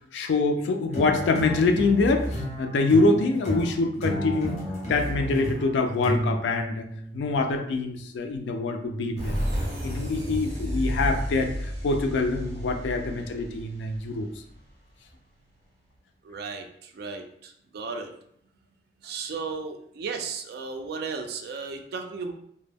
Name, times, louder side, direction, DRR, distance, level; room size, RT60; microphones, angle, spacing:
voice 1, 0.1-4.6 4.9-6.8 7.1-9.3 9.8-14.3, left 3 dB, 85° left, 5 dB, 0.4 m, -25 dB
sound 1, 0.9-7.3, equal, 40° left, 0.7 m, -32 dB
sound 2, 9.2-14.7, equal, 40° right, 0.8 m, -31 dB
voice 2, 16.2-18.1 19.0-22.3, right 4 dB, 60° right, 5 dB, 0.3 m, -35 dB
2.1 x 2.0 x 3.3 m, 0.70 s
head